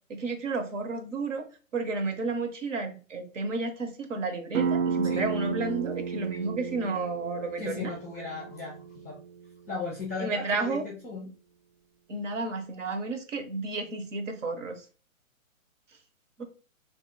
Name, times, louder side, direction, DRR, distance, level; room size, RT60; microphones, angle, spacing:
voice 1, 0.1-1.5 1.7-7.9 10.2-10.8 12.1-14.9 16.4-16.5, right 3 dB, 65° right, 6 dB, 0.9 m, -32 dB
sound 1, 4.5-9.9, right 6 dB, 90° right, 0.7 m, -33 dB
voice 2, 7.6-9.2 9.7-11.3, left 4 dB, 10° left, -4 dB, 0.5 m, -36 dB
2.8 x 2.7 x 3.8 m, 0.36 s
hypercardioid pair, 165°, 41 cm